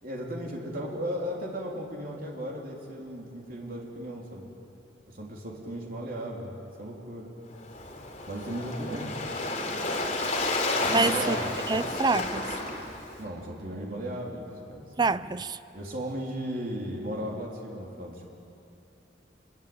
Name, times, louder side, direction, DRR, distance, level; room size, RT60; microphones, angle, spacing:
voice 1, 0.0-4.5 5.1-6.5 6.8-7.3 8.3-9.4 10.8-11.5 13.2-15.1 15.7-18.3, equal, 55° right, -2 dB, 3.9 m, -36 dB
Waves surf, 7.5-13.2, left 2 dB, 40° left, 3.6 m, -31 dB
voice 2, 10.8-11.4 11.7-12.6 15.0-15.6, right 3 dB, 25° right, 15 dB, 0.5 m, -27 dB
25.5 x 23.5 x 8.9 m, 2.8 s
head